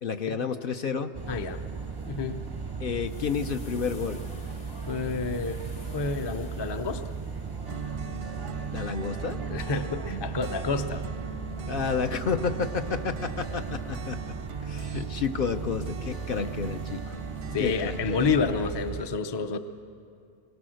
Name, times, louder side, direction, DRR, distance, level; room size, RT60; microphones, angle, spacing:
voice 1, 0.0-1.1 2.8-4.2 8.7-9.4 11.7-14.2 14.6-17.1 17.6-18.3, left 5 dB, 55° left, 7 dB, 0.8 m, -30 dB
sound 1, 1.1-19.0, right 5 dB, 30° right, 0.5 m, -37 dB
sound 2, 1.2-18.9, left 2 dB, 85° left, 1.9 m, -54 dB
voice 2, 1.3-1.6 2.0-2.5 4.9-5.6 5.9-7.0 9.5-11.1 17.5-19.6, left 4 dB, 30° left, 8 dB, 0.6 m, -29 dB
sound 3, 7.7-18.3, right 5 dB, 85° right, 1.0 m, -41 dB
25.5 x 18.0 x 6.4 m, 2.4 s
omnidirectional pair, 1.2 m